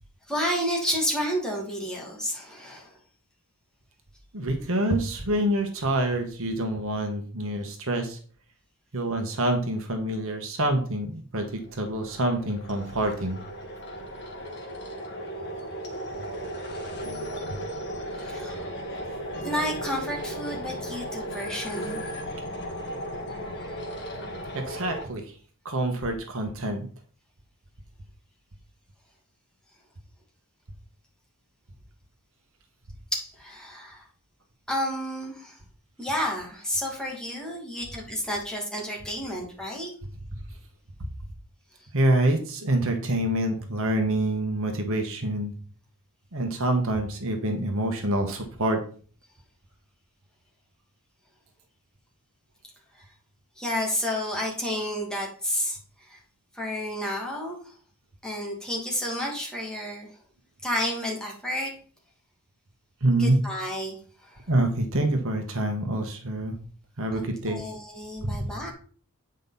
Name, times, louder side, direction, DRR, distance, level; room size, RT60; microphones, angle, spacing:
voice 1, 0.3-3.0 18.1-18.7 19.4-22.0 33.1-34.1 34.7-35.6 36.0-39.9 53.0-53.1 53.6-56.2 56.5-57.8 58.2-60.1 60.6-61.7 63.2-64.5 67.1-68.7, equal, 5° left, -2 dB, 2.5 m, -31 dB
voice 2, 4.3-8.2 8.9-13.4 17.5-17.6 24.5-25.2 25.6-26.8 40.3-40.4 41.9-45.5 46.3-48.8 63.0-63.4 64.5-66.5 67.0-67.6 68.2-68.5, right 1 dB, 65° right, 4 dB, 1.4 m, -26 dB
sound 1, 11.5-25.1, equal, 55° left, 2.1 m, -36 dB
9.0 x 5.3 x 4.1 m, 0.42 s
head